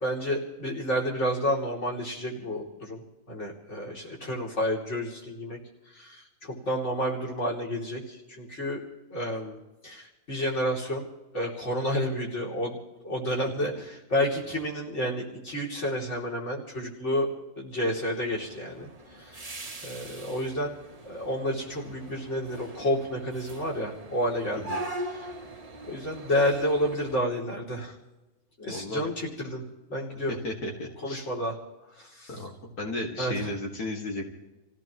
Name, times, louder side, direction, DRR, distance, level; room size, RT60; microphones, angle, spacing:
voice 1, 0.0-3.0 3.3-5.6 5.9-8.8 9.1-9.6 9.8-11.1 11.3-12.8 13.0-17.3 17.6-18.9 19.2-19.5 19.8-20.8 21.0-24.7 25.1-25.3 25.8-27.9 28.6-29.6 29.9-30.4 31.0-31.6 32.0-32.3 33.2-33.5, equal, 50° left, -2 dB, 3.3 m, -30 dB
sound 1, 18.1-27.2, right 1 dB, 25° right, 1.1 m, -41 dB
voice 2, 28.7-29.1 30.3-31.3 32.3-32.5 32.8-34.3, left 1 dB, 85° left, -1 dB, 2.7 m, -34 dB
28.0 x 16.5 x 3.1 m, 1.0 s
omnidirectional pair, 1.6 m